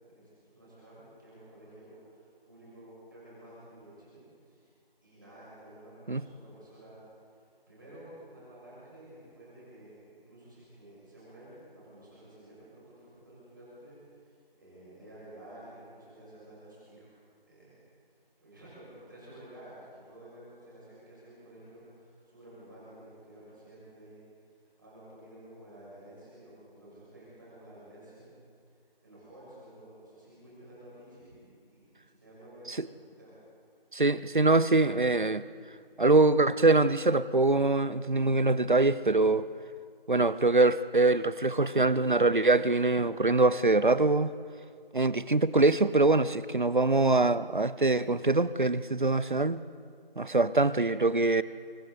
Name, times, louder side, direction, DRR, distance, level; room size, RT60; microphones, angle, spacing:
voice 1, 0.1-4.7 5.0-17.2 17.5-17.8 18.4-28.4 29.0-33.3, right 1 dB, 20° right, 6.7 m, -52 dB
voice 2, 33.9-35.5 36.0-39.5 40.1-44.3 44.9-49.6 50.2-51.4, right 2 dB, 55° right, 0.7 m, -24 dB
30.0 x 25.0 x 4.1 m
figure-of-eight pair, 175°, 29 cm